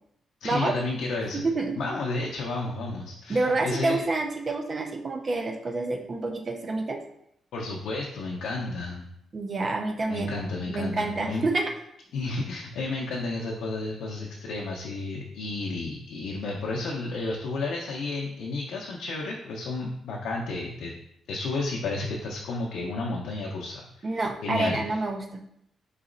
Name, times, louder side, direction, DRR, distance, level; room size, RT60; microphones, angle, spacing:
voice 1, 0.4-1.4 1.8-4.0 7.5-9.1 10.1-11.5 12.1-20.9 21.3-24.8, left 3 dB, 80° left, -1 dB, 0.6 m, -32 dB
voice 2, 1.4-1.7 3.3-7.0 9.3-10.3 10.6-11.7 24.0-25.4, right 2 dB, 30° right, 3 dB, 0.4 m, -28 dB
4.0 x 3.0 x 3.8 m, 0.75 s
cardioid pair, 170°, 0 cm